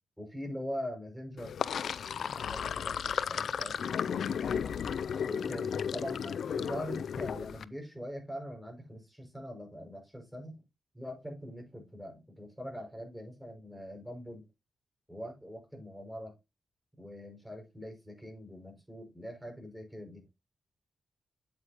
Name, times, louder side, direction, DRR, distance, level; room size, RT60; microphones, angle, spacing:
voice 1, 0.2-1.5 2.2-4.0 5.3-10.6 10.9-14.5 15.1-16.4 17.0-20.2, equal, 5° right, 2 dB, 5.8 m, -42 dB
Sink (filling or washing), 1.4-7.6, left 7 dB, 75° left, 0.4 m, -34 dB
8.9 x 8.5 x 2.9 m, 0.23 s
cardioid pair, 55°, 0 cm